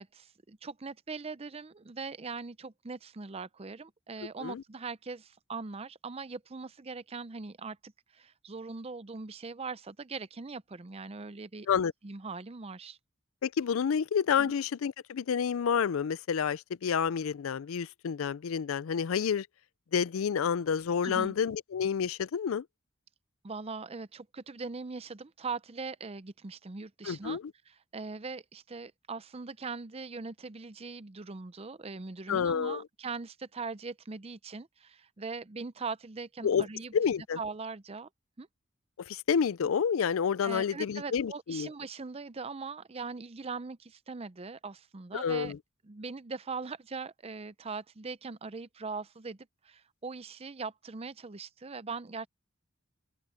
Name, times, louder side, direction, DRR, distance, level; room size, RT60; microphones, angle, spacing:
voice 1, 0.0-11.7 12.0-13.0 14.4-14.5 21.0-21.3 23.4-27.4 27.7-36.9 37.4-38.1 38.4-38.5 40.4-45.5 45.8-49.4 49.6-52.3, right 4 dB, 30° right, 0.6 m, -41 dB
voice 2, 13.4-19.5 19.9-22.7 27.0-27.4 32.3-32.8 36.4-36.7 36.9-37.4 39.0-41.7 45.1-45.6, left 7 dB, 85° left, 0.4 m, -29 dB
head